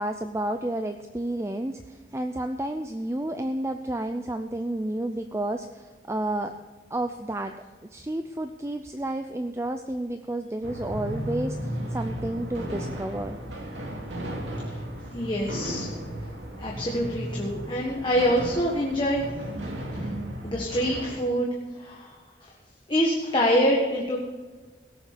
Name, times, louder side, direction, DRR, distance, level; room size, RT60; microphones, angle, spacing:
voice 1, 0.0-6.5 6.9-7.5 7.9-13.4, right 1 dB, 15° right, 6 dB, 0.4 m, -31 dB
sound 1, 10.6-21.2, equal, 85° right, 2.4 m, -35 dB
voice 2, 15.1-15.9 16.6-19.3 19.9-20.1 20.4-21.5 21.8-22.5 22.9-24.2, equal, 25° left, -2 dB, 1.5 m, -25 dB
17.5 x 7.1 x 6.8 m, 1.3 s
head